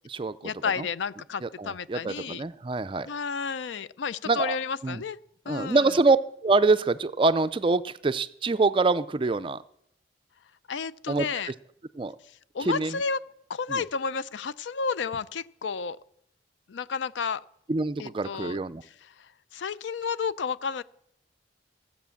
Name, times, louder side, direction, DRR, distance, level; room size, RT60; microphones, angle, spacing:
voice 1, 0.4-2.4 3.0-5.2 5.5-5.9 10.7-11.5 12.2-13.2 13.5-16.0 16.7-17.4 18.0-20.8, left 5 dB, 80° left, 17 dB, 0.5 m, -32 dB
voice 2, 1.4-3.1 4.3-4.6 4.8-5.0 5.5-6.2 6.4-9.6 11.1-11.3 12.0-12.1 12.7-13.0 13.7-13.8 17.7-18.8, right 3 dB, 30° right, 14 dB, 0.4 m, -25 dB
15.0 x 8.0 x 7.1 m, 0.73 s
head